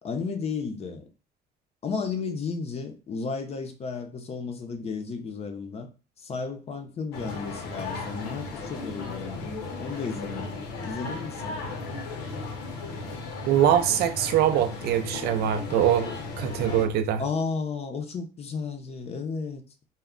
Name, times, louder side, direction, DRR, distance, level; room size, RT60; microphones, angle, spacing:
voice 1, 0.0-1.1 1.8-5.9 6.2-9.4 9.8-11.7 17.2-19.6, left 5 dB, 40° left, 0.5 m, -33 dB
sound 1, 7.1-16.9, left 3 dB, 85° left, 0.7 m, -36 dB
voice 2, 13.5-16.1 16.4-17.2, right 10 dB, 70° right, 0.5 m, -23 dB
2.2 x 2.1 x 3.6 m
cardioid pair, 110°, 17 cm